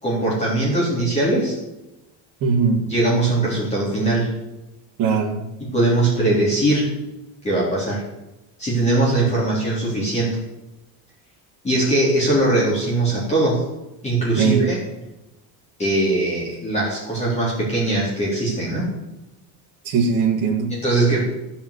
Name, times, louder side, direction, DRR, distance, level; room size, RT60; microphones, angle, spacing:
voice 1, 0.0-1.6 2.9-4.3 5.6-6.9 7.4-8.0 8.6-10.4 11.6-13.6 14.0-14.8 15.8-18.8 20.8-21.2, right 2 dB, 15° left, -7 dB, 3.7 m, -20 dB
voice 2, 2.4-2.8 5.0-5.4 14.4-14.7 19.8-20.8, right 5 dB, 45° right, -3 dB, 2.4 m, -20 dB
15.5 x 5.7 x 8.3 m, 0.99 s
cardioid pair, 180°, 44 cm